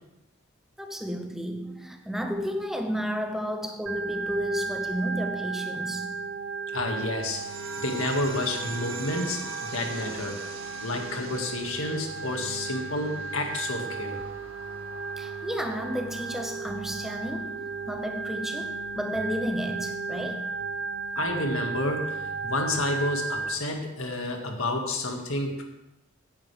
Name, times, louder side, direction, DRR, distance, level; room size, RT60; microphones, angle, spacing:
voice 1, 0.8-6.2 15.2-20.5, equal, ahead, 0.7 m, -32 dB
Organ, 3.9-23.5, right 4 dB, 60° right, 0.6 m, -35 dB
voice 2, 6.7-10.4 10.8-14.2 21.2-25.6, left 1 dB, 85° left, 1.9 m, -30 dB
sound 1, 7.2-18.2, right 3 dB, 80° right, 1.9 m, -44 dB
16.0 x 9.3 x 3.4 m
head